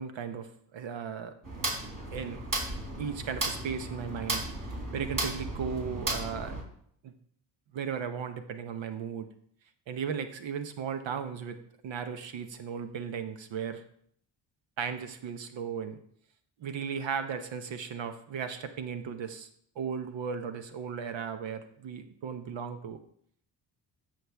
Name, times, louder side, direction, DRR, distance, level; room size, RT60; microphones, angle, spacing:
voice 1, 0.0-1.3 2.1-2.4 3.0-4.5 4.9-6.6 7.0-7.1 7.7-9.3 9.9-11.6 11.8-13.8 14.8-16.0 16.6-19.5 19.8-23.0, right 7 dB, 65° right, 9 dB, 0.9 m, -36 dB
sound 1, 1.4-6.6, right 2 dB, 40° right, 3.5 m, -35 dB
13.5 x 5.0 x 3.4 m, 0.65 s
hypercardioid pair, 45°, 49 cm